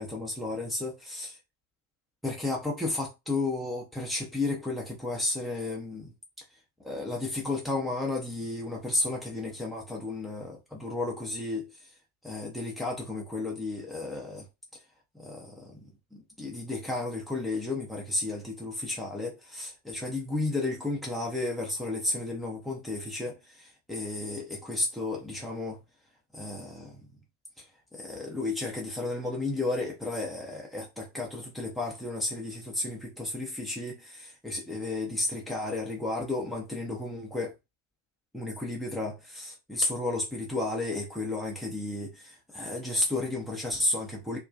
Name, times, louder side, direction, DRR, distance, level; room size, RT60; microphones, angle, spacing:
voice 1, 0.0-1.4 2.2-6.1 6.8-11.9 12.2-14.5 15.1-25.8 26.3-27.0 27.6-27.7 27.9-37.5 38.3-44.4, left 2 dB, ahead, 0.6 m, -33 dB
2.3 x 2.2 x 2.4 m
figure-of-eight pair, 90°, 0 cm